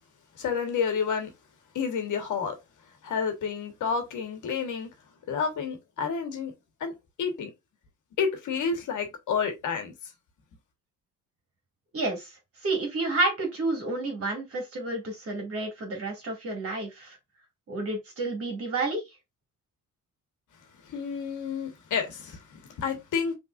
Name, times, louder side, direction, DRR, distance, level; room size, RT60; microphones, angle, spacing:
voice 1, 0.4-1.3 1.7-2.6 3.0-4.9 5.3-6.5 6.8-6.9 7.2-7.5 8.2-9.9 20.9-23.3, left 6 dB, 60° left, 1.3 m, -30 dB
voice 2, 11.9-12.3 12.6-17.2 17.7-19.0, right 2 dB, 45° right, 2.1 m, -30 dB
5.4 x 3.4 x 2.4 m
cardioid pair, 155°, 34 cm